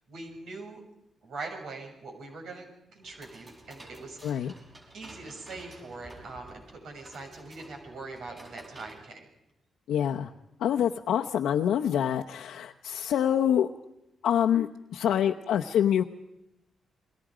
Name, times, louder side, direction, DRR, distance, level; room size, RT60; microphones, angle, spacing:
voice 1, 0.1-0.8 1.2-4.6 4.9-9.3, right 3 dB, 70° right, 1 dB, 7.0 m, -42 dB
sound 1, 3.0-9.0, right 1 dB, 25° right, 6.5 m, -51 dB
voice 2, 4.2-4.5 9.9-10.3 10.6-13.7 14.2-16.0, left 9 dB, 90° left, 2 dB, 0.9 m, -26 dB
29.0 x 22.0 x 5.1 m, 0.88 s
cardioid pair, 115°, 0 cm